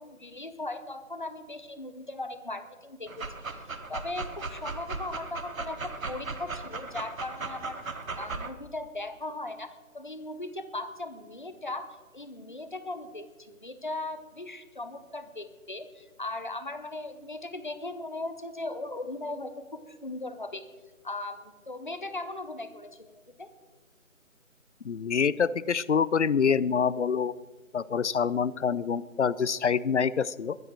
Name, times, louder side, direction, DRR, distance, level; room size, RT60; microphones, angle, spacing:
voice 1, 0.0-3.2 3.5-3.6 3.9-7.8 8.1-20.6 21.0-23.5, left 2 dB, 35° left, 10 dB, 0.9 m, -38 dB
Dog, 3.1-8.5, right 3 dB, 75° right, 1.4 m, -37 dB
voice 2, 24.8-27.3 27.7-30.6, left 6 dB, 60° left, 19 dB, 0.5 m, -26 dB
21.5 x 7.8 x 4.5 m, 1.3 s
figure-of-eight pair, 175°, 41 cm